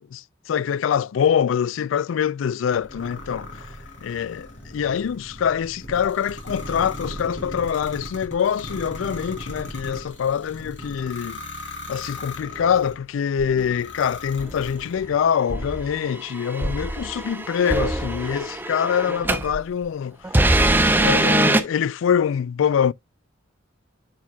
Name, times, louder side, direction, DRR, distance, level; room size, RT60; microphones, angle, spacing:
voice 1, 0.1-3.5 4.0-11.4 11.9-20.3 21.0-22.9, left 8 dB, 85° left, 0.3 m, -24 dB
sound 1, 2.7-13.0 13.6-15.2, left 1 dB, 65° left, 3.7 m, -37 dB
sound 2, 13.4-13.7 14.4-14.7 15.5-19.6 20.2-21.6, right 1 dB, 10° right, 0.7 m, -22 dB
9.4 x 5.8 x 2.3 m
head